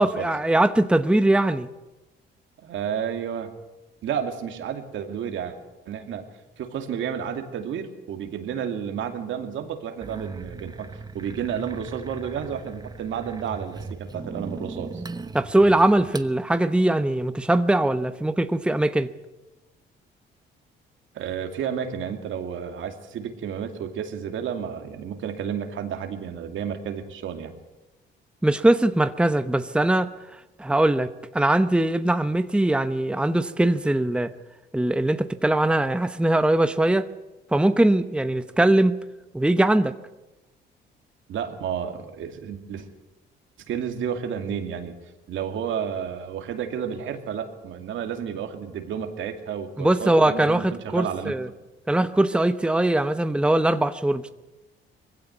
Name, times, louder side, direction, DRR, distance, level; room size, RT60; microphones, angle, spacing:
voice 1, 0.0-1.7 15.3-19.1 28.4-30.1 30.6-34.3 34.7-37.1 37.5-39.0 39.3-39.9 49.8-51.5 51.9-54.3, right 1 dB, 5° right, 0.8 m, -21 dB
voice 2, 2.6-3.5 4.0-5.6 5.9-6.3 6.6-15.0 21.1-27.5 41.3-42.9 43.6-44.9 45.3-51.3, right 8 dB, 75° right, 2.5 m, -31 dB
sound 1, 10.0-16.3, right 3 dB, 20° right, 1.1 m, -39 dB
21.0 x 16.0 x 9.4 m
cardioid pair, 90°, 20 cm